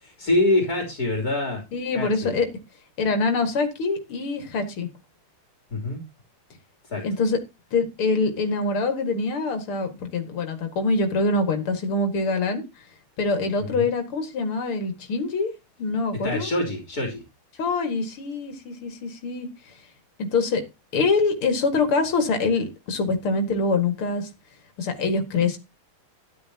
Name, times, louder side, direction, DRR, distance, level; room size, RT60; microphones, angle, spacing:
voice 1, 0.0-1.6 1.9-2.3 5.7-6.0 6.9-7.0 13.6-13.8 16.2-17.2, left 2 dB, 45° left, 2 dB, 3.8 m, -25 dB
voice 2, 1.7-2.5 3.0-4.9 7.0-7.4 7.7-12.6 13.2-15.5 15.8-16.5 17.6-19.7 20.2-20.6 20.9-24.3 24.8-25.6, left 3 dB, 80° left, 7 dB, 2.9 m, -24 dB
13.0 x 11.0 x 2.9 m, 0.24 s
omnidirectional pair, 2.3 m